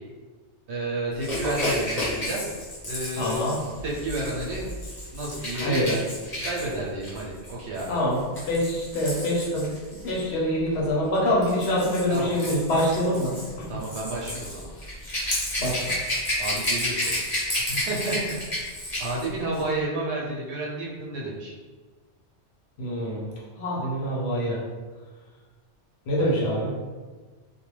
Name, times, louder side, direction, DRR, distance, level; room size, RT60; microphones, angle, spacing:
voice 1, 0.7-2.5 2.8-3.4 3.8-4.7 5.1-5.9 6.4-8.0 12.1-12.4 13.7-14.7 16.4-17.2 17.6-18.4 19.0-21.6 26.2-26.5, right 2 dB, 75° right, -4 dB, 0.9 m, -31 dB
Rattle / Rattle (instrument), 1.2-10.2 11.1-19.3 19.5-19.7, left 1 dB, 40° left, 0.9 m, -31 dB
voice 2, 3.1-3.6 5.5-6.0 7.9-13.8 15.6-15.9 22.8-23.3 23.6-24.6 26.1-26.7, equal, 70° left, -5 dB, 1.0 m, -25 dB
2.4 x 2.2 x 3.1 m, 1.4 s
omnidirectional pair, 1.2 m